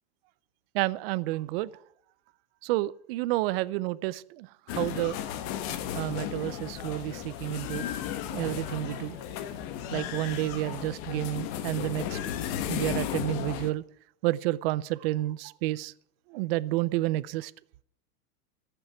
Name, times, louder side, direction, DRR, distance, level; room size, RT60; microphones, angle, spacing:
voice 1, 0.7-1.7 2.6-5.2 5.9-7.9 8.3-9.2 9.9-12.3 12.7-13.8 14.2-15.9 16.3-17.5, right 17 dB, 40° right, 0.5 m, -30 dB
zone de securite, 4.7-13.7, left 10 dB, 40° left, 1.2 m, -34 dB
13.5 x 6.9 x 9.8 m
supercardioid pair, 145°, 44 cm